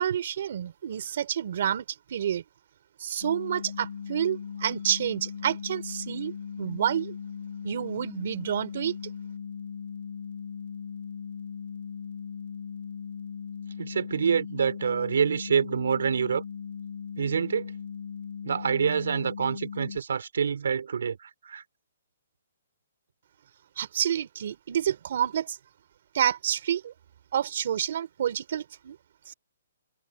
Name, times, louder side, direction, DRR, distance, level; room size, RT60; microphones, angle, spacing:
voice 1, 0.0-2.4 3.0-7.2 7.6-9.0 23.8-25.6 26.1-26.9 27.3-29.0 29.3-29.4, right 9 dB, 45° right, 3.9 m, -29 dB
sound 1, 3.2-20.0, left 6 dB, 50° left, 6.0 m, -38 dB
voice 2, 13.8-16.4 17.2-17.7 18.4-21.6, right 6 dB, 70° right, 4.0 m, -27 dB
hypercardioid pair, 180°, 0 cm